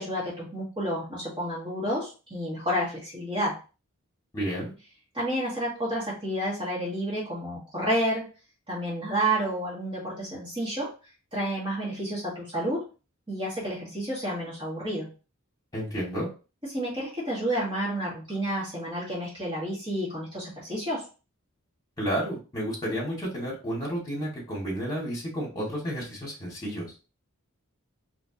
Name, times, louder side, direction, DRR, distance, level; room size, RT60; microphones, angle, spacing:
voice 1, 0.0-3.6 5.1-8.3 8.7-10.9 11.3-12.9 13.3-15.1 16.7-21.1, right 1 dB, 25° right, -6 dB, 1.9 m, -30 dB
voice 2, 4.3-4.7 15.7-16.3 22.0-26.9, equal, 15° left, -4 dB, 2.2 m, -31 dB
4.2 x 3.3 x 2.9 m, 0.33 s
head